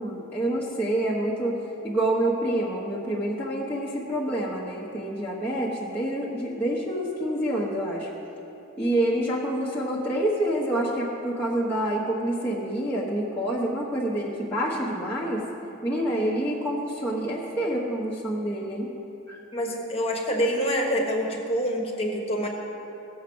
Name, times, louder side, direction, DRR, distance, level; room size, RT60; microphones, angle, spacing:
voice 1, 0.0-1.6 1.8-8.1 8.8-15.4 15.8-18.9 19.3-19.4, right 1 dB, 10° left, -7 dB, 1.1 m, -27 dB
voice 2, 19.5-22.5, equal, 25° left, 0 dB, 1.4 m, -26 dB
16.5 x 7.3 x 6.2 m, 3.0 s
head